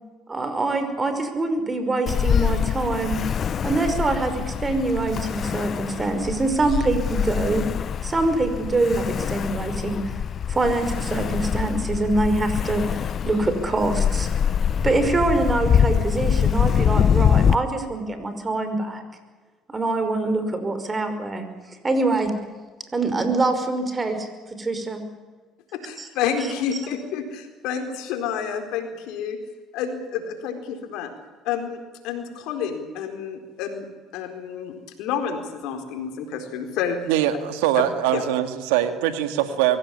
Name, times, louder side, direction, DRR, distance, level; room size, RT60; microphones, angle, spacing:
voice 1, 0.3-3.2 3.6-7.6 8.0-10.0 10.5-14.3 14.8-19.0 19.7-21.5 21.8-22.3 22.9-24.3 24.6-25.0 26.0-26.1, right 2 dB, 25° right, 9 dB, 5.5 m, -24 dB
Ocean, 2.1-17.5, left 8 dB, 50° left, 0.8 m, -24 dB
voice 2, 25.7-29.4 29.7-31.1 31.4-33.9 34.1-37.0 37.8-37.9 38.1-38.2, left 7 dB, 75° left, 6 dB, 4.2 m, -29 dB
voice 3, 37.0-39.8, right 12 dB, 90° right, 9 dB, 2.1 m, -22 dB
23.5 x 17.0 x 10.0 m, 1.4 s
supercardioid pair, 75°, 0 cm